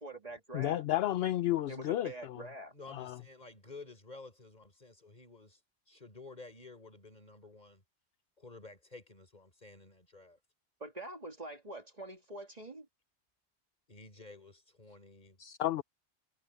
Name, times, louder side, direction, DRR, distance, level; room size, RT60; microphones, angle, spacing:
voice 1, 0.0-0.8 1.7-2.7 10.8-12.9, right 2 dB, 35° right, 1.8 m, -45 dB
voice 2, 0.5-2.4 2.9-3.2 15.4-15.8, left 13 dB, 65° left, 0.7 m, -32 dB
voice 3, 2.7-5.6 5.9-7.8 8.4-10.4 13.9-15.4, left 3 dB, 35° left, 4.3 m, -52 dB
omnidirectional pair, 1.2 m